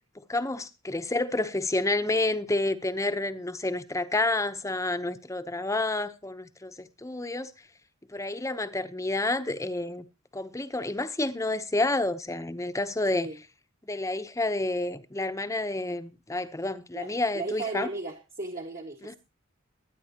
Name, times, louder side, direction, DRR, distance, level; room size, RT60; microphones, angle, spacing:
voice 1, 0.3-7.5 8.1-10.1 10.3-13.3 13.9-17.9 19.0-19.2, left 2 dB, 15° left, 0.9 m, -29 dB
voice 2, 16.9-19.2, right 3 dB, 45° right, 1.7 m, -36 dB
22.5 x 9.6 x 3.0 m
head